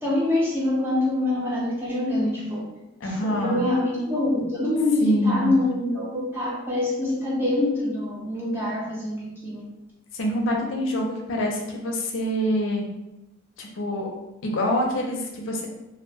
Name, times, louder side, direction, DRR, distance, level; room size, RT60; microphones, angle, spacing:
voice 1, 0.0-2.7 3.0-9.6, left 1 dB, 10° right, -6 dB, 0.6 m, -25 dB
voice 2, 3.0-3.6 5.0-5.6 10.1-12.8 13.6-14.1 14.4-15.7, equal, 70° left, 1 dB, 0.5 m, -25 dB
2.3 x 2.1 x 3.2 m, 0.96 s
head